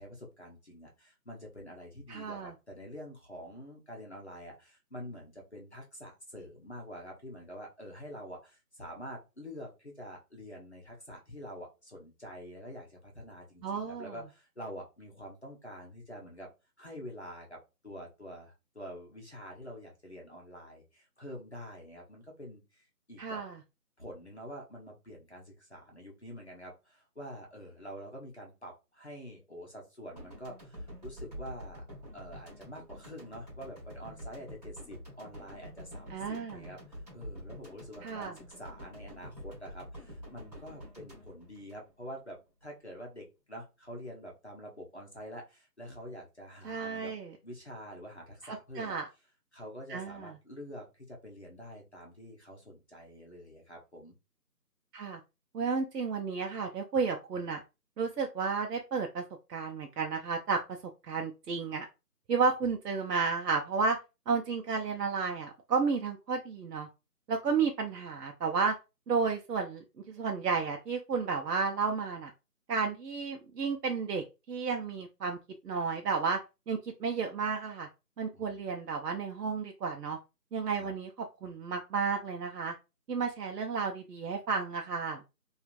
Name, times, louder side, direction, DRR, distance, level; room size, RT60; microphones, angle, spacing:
voice 1, 0.0-16.5 16.8-17.6 17.8-23.4 24.0-31.8 32.1-47.1 47.4-49.0 49.5-54.1 78.3-78.6 80.7-80.9, equal, 45° left, -1 dB, 0.7 m, -46 dB
voice 2, 2.1-2.5 13.6-14.1 23.2-23.6 36.1-36.7 38.0-38.3 46.6-47.3 48.4-49.1 49.9-50.3 54.9-55.2 55.5-57.6 58.0-59.2 59.5-60.6 61.1-61.9 62.3-64.0 64.3-66.9 67.3-68.8 69.1-72.3 72.7-75.4 75.6-76.4 76.7-77.9 78.2-80.2 80.5-81.1 81.4-82.7 83.1-85.2, right 5 dB, 80° right, 2 dB, 0.6 m, -32 dB
sound 1, 30.2-42.4, equal, 25° right, 1.1 m, -47 dB
3.1 x 2.4 x 2.4 m, 0.27 s
figure-of-eight pair, 175°, 48 cm